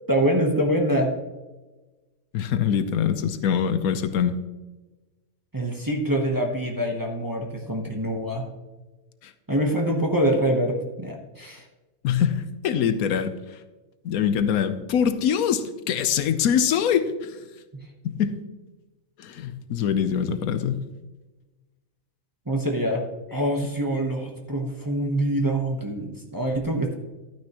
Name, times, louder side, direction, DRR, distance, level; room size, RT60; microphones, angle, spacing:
voice 1, 0.1-1.1 5.5-8.5 9.5-11.6 17.7-17.8 22.5-23.0 23.3-26.9, right 1 dB, 15° right, 0 dB, 0.9 m, -25 dB
voice 2, 2.3-4.3 9.2-9.3 12.0-13.3 14.0-17.4 18.0-18.3 19.2-20.8, left 8 dB, 85° left, 10 dB, 1.2 m, -24 dB
11.5 x 9.5 x 3.0 m, 1.2 s
omnidirectional pair, 1.5 m